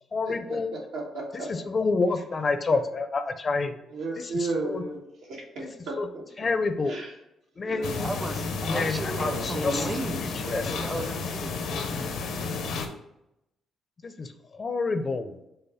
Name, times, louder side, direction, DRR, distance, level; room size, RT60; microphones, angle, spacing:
voice 1, 0.1-0.7 1.5-3.8 4.2-4.3 4.6-4.8 6.0-6.1 6.4-7.0 7.6-8.1 8.7-9.9 10.5-10.7 14.0-15.3, left 3 dB, 40° left, 9 dB, 0.4 m, -28 dB
voice 2, 0.9-1.5 3.9-5.0 5.3-6.2 6.9-7.1 7.6-8.2 8.9-9.8, right 2 dB, 90° right, -3 dB, 1.5 m, -34 dB
sound 1, 7.8-12.9, left 4 dB, 80° left, 0.6 m, -32 dB
voice 3, 7.8-12.2, right 1 dB, 15° right, 6 dB, 0.5 m, -35 dB
5.5 x 2.0 x 4.1 m, 0.84 s
cardioid pair, 90°, 0 cm